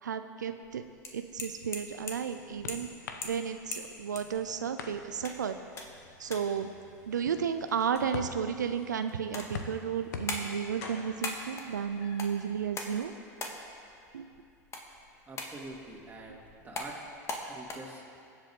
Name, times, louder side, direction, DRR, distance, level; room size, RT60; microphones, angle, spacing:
voice 1, 0.0-0.9 1.1-2.9 3.2-5.6 6.2-6.7 7.1-13.1 14.1-14.3 16.3-16.4, right 7 dB, 90° right, 8 dB, 0.4 m, -33 dB
sound 1, 0.6-17.7, left 2 dB, 30° left, 1.8 m, -43 dB
sound 2, 1.6-12.7, left 4 dB, 80° left, 1.0 m, -47 dB
sound 3, 10.1-10.2 10.8-12.6 12.9-13.0 13.4-13.5 13.8-13.9, left 3 dB, 65° left, 1.8 m, -48 dB
voice 2, 15.3-17.0 17.5-18.0, right 2 dB, 20° right, -2 dB, 2.8 m, -46 dB
20.5 x 8.1 x 3.7 m, 2.4 s
hypercardioid pair, 90°, 9 cm